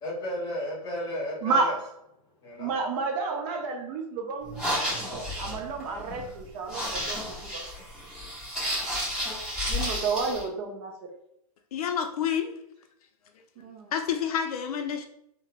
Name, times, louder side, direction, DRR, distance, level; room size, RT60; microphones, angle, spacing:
voice 1, 0.0-1.7 2.4-2.7, left 1 dB, 20° left, -3 dB, 0.9 m, -33 dB
voice 2, 1.4-1.8 2.6-4.6 5.4-7.5 9.6-10.9 13.6-13.9, right 4 dB, 40° right, 2 dB, 0.4 m, -30 dB
sound 1, 4.4-10.4, equal, 5° right, 1.0 m, -32 dB
voice 3, 11.7-12.5 13.9-15.1, left 8 dB, 70° left, 6 dB, 0.4 m, -28 dB
2.2 x 2.0 x 3.2 m, 0.79 s
hypercardioid pair, 135°, 20 cm